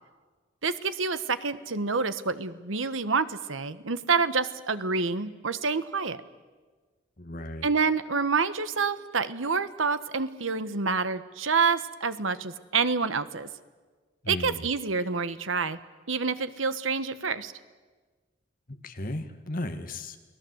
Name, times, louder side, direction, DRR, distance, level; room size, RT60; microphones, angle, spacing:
voice 1, 0.6-6.2 7.6-13.5 14.3-15.8 16.1-17.5, right 4 dB, 85° right, 13 dB, 1.2 m, -27 dB
voice 2, 7.2-7.7 14.2-14.7 18.7-20.2, left 1 dB, 45° left, 7 dB, 1.9 m, -35 dB
29.5 x 19.5 x 8.0 m, 1.4 s
head